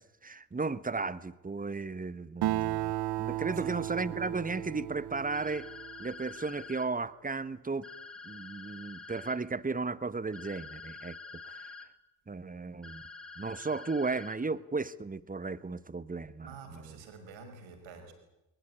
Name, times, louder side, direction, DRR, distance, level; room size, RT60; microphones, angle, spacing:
voice 1, 0.0-2.9 3.2-5.7 6.0-7.9 8.2-11.1 11.4-11.9 12.3-13.0 13.4-16.5, right 4 dB, 15° right, 1.2 m, -35 dB
Acoustic guitar, 2.4-6.2, right 14 dB, 50° right, 0.9 m, -34 dB
voice 2, 3.5-3.9 16.4-18.1, right 5 dB, 65° right, 5.4 m, -49 dB
sound 1, 5.3-6.9 7.8-9.4 10.3-11.9 12.8-14.4, left 4 dB, ahead, 3.7 m, -47 dB
22.0 x 20.5 x 9.6 m
hypercardioid pair, 45°, 50 cm